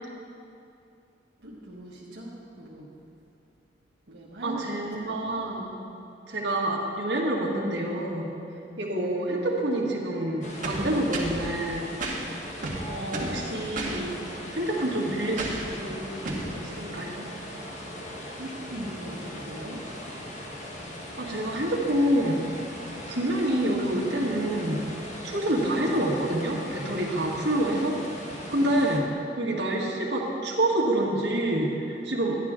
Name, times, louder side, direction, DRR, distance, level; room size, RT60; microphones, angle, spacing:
voice 1, 1.4-2.9 4.1-5.3 18.4-19.8 28.5-28.8, right 1 dB, 85° right, -6 dB, 1.3 m, -40 dB
voice 2, 4.4-5.7 6.3-8.3 8.8-11.9 12.8-14.1 14.5-17.3 21.2-22.4 23.1-24.8 25.2-28.0 28.2-29.0 29.4-32.4, right 1 dB, 70° right, -3 dB, 1.7 m, -27 dB
sound 1, 10.4-29.0, equal, 40° left, 1.3 m, -39 dB
sound 2, 10.6-11.4 12.0-12.2 12.6-13.4 13.7-14.0 15.4-15.7 16.2-16.5, right 2 dB, 50° right, 1.5 m, -32 dB
11.5 x 10.5 x 3.7 m, 2.7 s
head